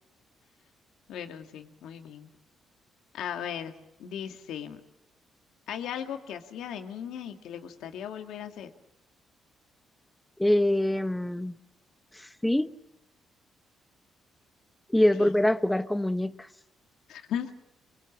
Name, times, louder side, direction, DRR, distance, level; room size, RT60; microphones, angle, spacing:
voice 1, 1.1-2.3 3.1-3.7 4.0-4.8 5.7-8.7 15.2-15.3 17.1-17.5, left 9 dB, 80° left, 2.0 m, -37 dB
voice 2, 10.4-11.5 12.2-12.7 14.9-16.3, left 1 dB, 5° left, 1.0 m, -24 dB
24.5 x 22.0 x 7.4 m
cardioid pair, 90°, 0 cm